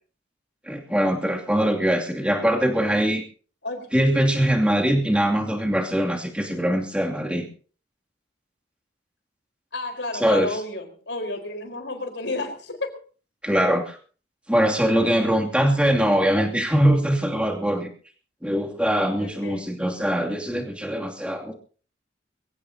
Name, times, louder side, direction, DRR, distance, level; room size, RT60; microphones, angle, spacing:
voice 1, 0.7-3.2 3.9-7.5 10.1-10.5 13.4-14.0 14.5-17.9 18.4-21.5, equal, 5° right, 2.6 m, -22 dB
voice 2, 9.7-13.0 19.2-19.7, left 2 dB, 80° left, 4.4 m, -31 dB
23.5 x 16.5 x 2.8 m
head